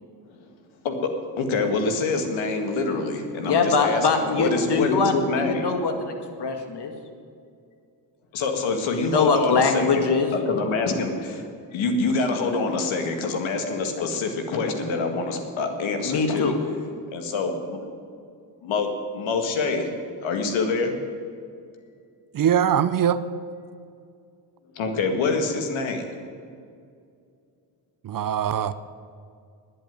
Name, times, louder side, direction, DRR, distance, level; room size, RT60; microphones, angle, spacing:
voice 1, 1.4-5.7 8.3-10.1 10.5-11.5 11.7-16.5 17.1-17.8 18.6-18.9 19.1-19.9 20.2-20.9 24.8-26.1, left 4 dB, 75° left, 5 dB, 1.9 m, -26 dB
voice 2, 3.4-6.9 9.0-10.3 16.0-16.5, left 4 dB, 55° left, 5 dB, 2.1 m, -23 dB
voice 3, 22.3-23.2 28.0-28.7, right 9 dB, 45° right, 14 dB, 0.6 m, -22 dB
10.0 x 8.6 x 9.4 m, 2.3 s
supercardioid pair, 65°, 47 cm